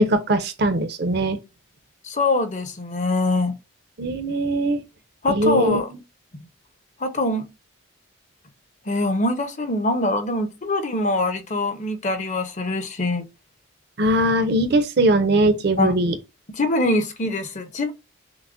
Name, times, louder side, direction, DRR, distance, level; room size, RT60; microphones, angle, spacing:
voice 1, 0.0-1.4 4.0-4.8 5.3-5.8 14.0-16.1, right 1 dB, 50° right, 0.6 m, -20 dB
voice 2, 2.0-3.6 5.2-5.9 7.0-7.5 8.9-13.3 15.8-16.1 16.5-17.9, left 2 dB, 35° left, 0.6 m, -23 dB
5.9 x 2.1 x 2.4 m
head